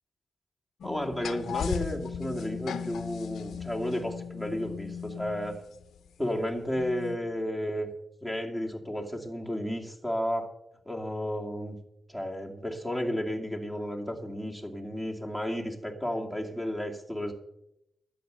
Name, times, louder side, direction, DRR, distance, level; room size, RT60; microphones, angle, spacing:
sound 1, 0.8-6.1 6.7-7.2, left 7 dB, 80° left, 0.8 m, -37 dB
voice 1, 0.8-5.6 6.2-7.9 8.2-10.5 10.9-11.8 12.1-17.3, equal, 5° right, 2 dB, 2.5 m, -32 dB
11.5 x 8.9 x 6.9 m, 0.83 s
cardioid pair, 100°, 0 cm